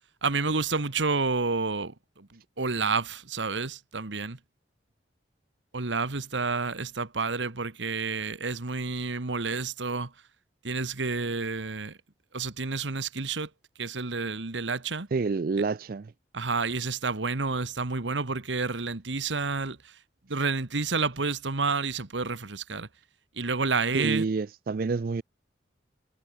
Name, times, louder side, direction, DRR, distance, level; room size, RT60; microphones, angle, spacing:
voice 1, 0.2-4.4 5.7-10.1 10.6-12.0 12.3-13.5 13.8-15.1 16.3-19.9 20.3-22.9 23.4-24.3, right 4 dB, 85° right, 1.5 m, -29 dB
voice 2, 15.1-16.1 23.9-25.2, right 4 dB, 50° right, 0.4 m, -28 dB
head